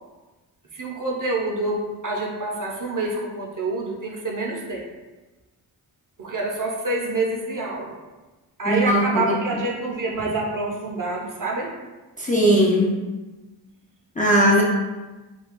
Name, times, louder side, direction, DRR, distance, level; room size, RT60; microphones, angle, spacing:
voice 1, 0.7-4.8 6.2-7.9 8.6-11.7, right 2 dB, 40° right, -1 dB, 0.7 m, -27 dB
voice 2, 8.7-9.4 12.2-13.0 14.2-14.6, equal, 15° left, -4 dB, 0.4 m, -18 dB
2.5 x 2.3 x 3.6 m, 1.2 s
cardioid pair, 60°, 49 cm